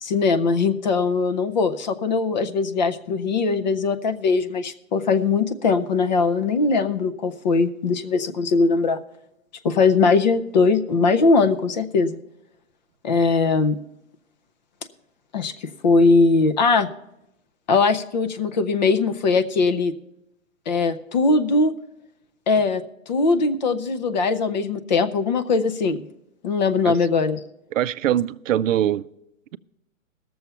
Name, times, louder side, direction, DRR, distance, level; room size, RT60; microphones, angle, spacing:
voice 1, 0.0-9.0 9.6-12.2 13.0-13.8 15.3-16.9 17.7-19.9 20.7-21.7 22.5-22.8 23.1-26.0 26.4-27.4, left 4 dB, 35° left, 10 dB, 0.5 m, -20 dB
voice 2, 27.7-29.0, right 11 dB, 70° right, 15 dB, 0.5 m, -22 dB
17.0 x 7.0 x 5.6 m, 0.85 s
hypercardioid pair, 160°, 40 cm